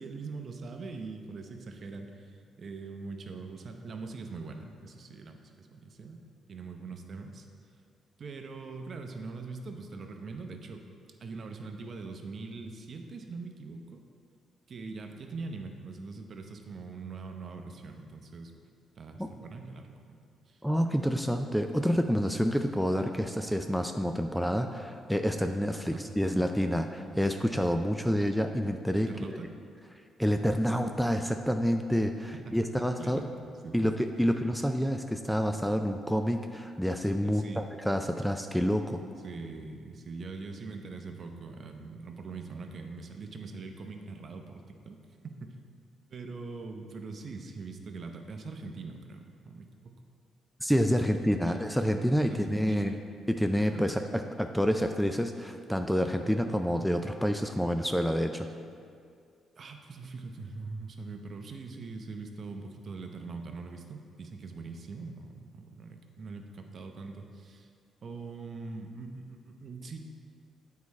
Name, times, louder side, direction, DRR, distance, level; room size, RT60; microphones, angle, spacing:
voice 1, 0.0-6.2 6.5-7.5 8.2-10.8 11.2-14.0 14.7-18.5 19.0-20.2 20.5-20.6 25.9-26.2 29.0-29.5 32.3-33.4 33.6-33.8 34.3-34.4 37.2-37.6 39.2-45.0 45.2-45.6 46.1-50.0 51.0-51.7 52.2-53.0 53.6-53.8 59.5-67.7 68.0-70.0, right 4 dB, 50° right, 4 dB, 0.7 m, -42 dB
voice 2, 20.6-29.1 30.2-33.2 33.7-39.0 50.6-53.0 53.3-58.5, equal, ahead, 6 dB, 0.3 m, -28 dB
8.4 x 4.7 x 4.2 m, 2.2 s
cardioid pair, 90°, 0 cm